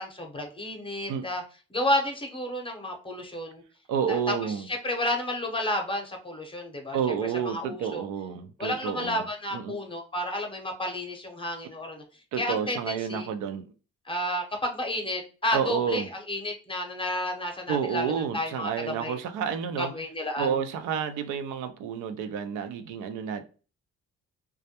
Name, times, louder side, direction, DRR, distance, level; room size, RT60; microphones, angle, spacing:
voice 1, 0.0-1.4 1.7-3.6 4.1-7.0 7.5-8.0 8.6-12.0 12.4-13.3 14.1-19.2 19.8-20.6, left 1 dB, 15° left, 0.7 m, -31 dB
voice 2, 3.9-4.7 6.9-9.2 9.5-9.8 12.3-13.6 15.5-16.1 17.7-19.9 20.4-23.4, right 7 dB, 85° right, 0.5 m, -30 dB
2.3 x 2.1 x 2.8 m
cardioid pair, 90°, 30 cm